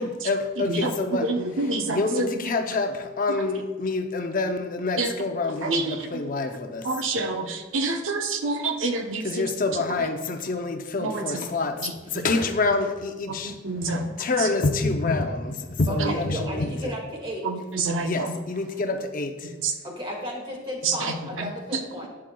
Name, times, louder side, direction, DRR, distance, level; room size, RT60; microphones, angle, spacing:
voice 1, 0.0-1.2 1.9-6.9 9.2-11.8 12.1-13.6 13.9-16.9 18.0-19.5, left 3 dB, 45° left, 5 dB, 0.6 m, -27 dB
voice 2, 0.6-2.5 5.0-5.1 5.6-6.3 6.8-9.3 10.0-10.1 11.0-11.5 11.8-12.2 13.3-14.1 14.4-14.5 16.0-16.1 17.4-18.3 19.6-19.7 20.8-21.8, right 3 dB, 85° right, 4 dB, 0.8 m, -28 dB
voice 3, 15.9-17.5 19.8-22.1, equal, 25° right, 0 dB, 2.0 m, -34 dB
11.0 x 8.7 x 2.3 m, 1.2 s
head